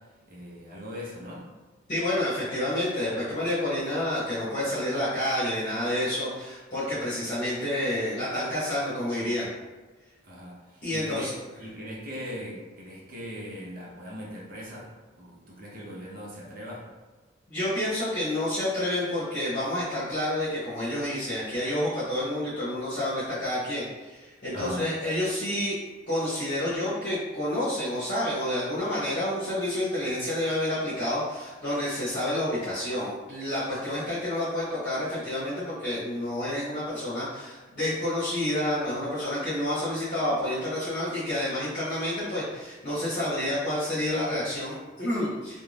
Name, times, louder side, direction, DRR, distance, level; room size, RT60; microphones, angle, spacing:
voice 1, 0.3-1.5 10.2-11.3 11.6-14.9 15.2-16.9 24.5-24.9, equal, 45° right, -5 dB, 0.7 m, -39 dB
voice 2, 1.9-9.5 10.8-11.3 17.5-25.8 26.1-45.6, left 1 dB, 45° left, -11 dB, 0.9 m, -29 dB
2.5 x 2.2 x 3.2 m, 1.3 s
head